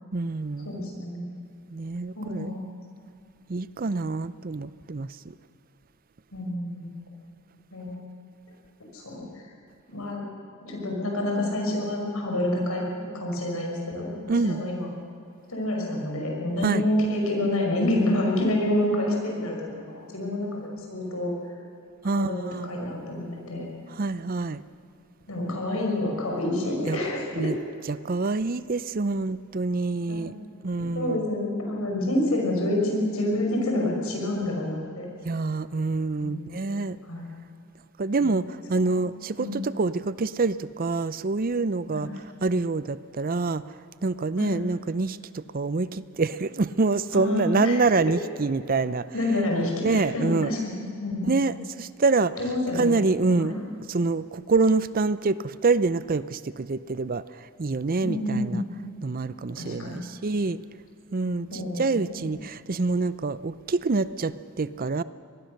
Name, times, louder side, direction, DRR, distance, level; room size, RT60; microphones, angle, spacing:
voice 1, 0.1-0.7 1.7-2.5 3.5-5.1 14.3-14.6 16.6-16.8 22.0-22.7 23.9-24.6 25.7-25.8 26.9-27.0 27.4-27.6 27.9-30.3 30.6-31.3 35.2-37.0 38.0-42.1 42.4-43.6 44.0-49.0 49.6-50.5 51.3-52.4 52.8-57.2 57.6-58.6 59.0-60.6 61.1-65.0, right 3 dB, 40° right, 16 dB, 0.5 m, -26 dB
voice 2, 0.6-1.3 2.2-2.6 6.3-6.9 7.7-8.0 8.9-9.3 9.9-10.2 10.6-12.9 13.1-14.9 15.5-21.3 22.0-23.7 25.3-27.5 30.1-30.3 30.9-35.1 36.2-36.4 36.7-36.8 37.0-37.3 38.2-38.3 38.9-39.0 39.4-39.6 41.9-42.1 44.4-44.5 47.1-47.9 49.1-51.4 52.4-53.0 53.4-53.6 58.0-58.6 59.6-60.1 61.5-62.3, left 1 dB, 75° left, 0 dB, 5.7 m, -28 dB
24.5 x 19.5 x 6.6 m, 2.6 s
head